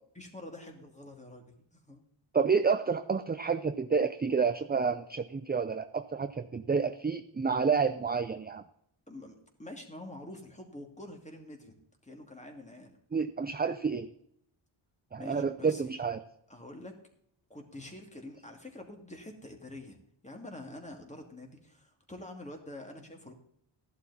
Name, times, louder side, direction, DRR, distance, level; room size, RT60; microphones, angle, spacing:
voice 1, 0.2-2.0 9.1-11.7 12.0-13.0 15.2-15.9 16.5-17.0 17.5-23.3, left 1 dB, 15° left, 3 dB, 2.4 m, -46 dB
voice 2, 2.3-8.6 13.1-14.1 15.1-16.2, right 5 dB, 20° right, 10 dB, 0.5 m, -29 dB
14.5 x 11.0 x 4.2 m, 0.71 s
wide cardioid pair, 125°, 49 cm